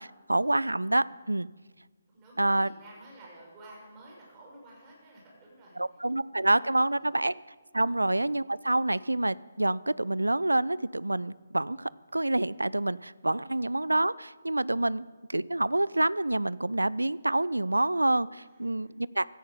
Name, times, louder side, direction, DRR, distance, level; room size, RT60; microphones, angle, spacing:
voice 1, 0.0-1.5 2.4-2.7 5.8-7.3 7.7-19.3, right 2 dB, 80° right, 21 dB, 0.4 m, -27 dB
voice 2, 2.1-6.5 6.8-7.1 7.7-7.9 18.4-18.9, right 1 dB, 20° right, -3 dB, 5.4 m, -53 dB
16.5 x 14.0 x 5.1 m, 1.3 s
figure-of-eight pair, 140°, 0 cm